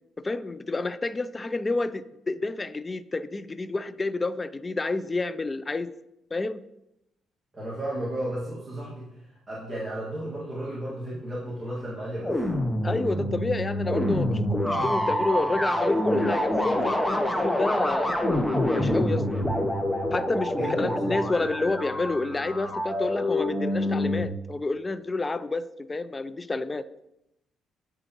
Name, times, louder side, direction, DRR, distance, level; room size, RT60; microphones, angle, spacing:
voice 1, 0.2-5.9 6.3-6.6 12.8-18.1 18.7-19.2 20.1-26.8, left 3 dB, 25° left, 14 dB, 0.4 m, -29 dB
voice 2, 7.5-9.1 9.5-12.4 20.5-21.2, right 1 dB, 20° right, -7 dB, 1.9 m, -33 dB
sound 1, 12.2-24.3, left 1 dB, 5° left, 0.8 m, -26 dB
10.5 x 3.7 x 3.0 m, 0.85 s
cardioid pair, 90°, 0 cm